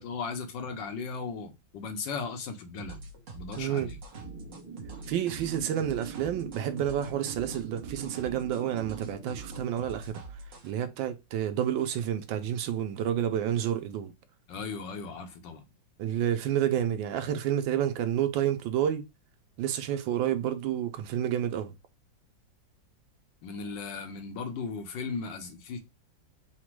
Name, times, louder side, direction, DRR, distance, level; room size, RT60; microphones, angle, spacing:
voice 1, 0.0-3.0 3.3-4.0 14.5-15.6 23.4-25.8, left 5 dB, 75° left, 1.4 m, -37 dB
sound 1, 2.8-10.7, right 3 dB, 50° right, 1.1 m, -44 dB
voice 2, 3.6-3.9 5.1-10.2 10.6-14.1 16.0-19.0 19.6-21.7, right 10 dB, 90° right, 1.4 m, -29 dB
sound 2, 4.1-9.6, right 7 dB, 15° right, 0.7 m, -44 dB
4.1 x 2.2 x 4.4 m
omnidirectional pair, 2.0 m